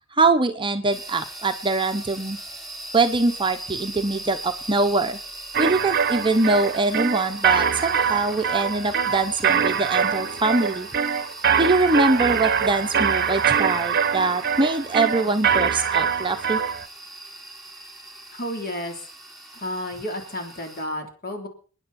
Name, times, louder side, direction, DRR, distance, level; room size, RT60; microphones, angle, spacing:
voice 1, 0.1-2.4 2.9-5.2 5.6-10.9 11.6-16.6, right 3 dB, 25° right, 7 dB, 0.9 m, -23 dB
sound 1, 0.9-20.8, right 2 dB, ahead, 4.1 m, -40 dB
sound 2, 5.5-16.8, right 7 dB, 45° right, 0.9 m, -23 dB
voice 2, 18.3-18.9 19.6-21.5, left 1 dB, 45° left, 3 dB, 3.6 m, -31 dB
28.5 x 9.9 x 4.3 m, 0.42 s
head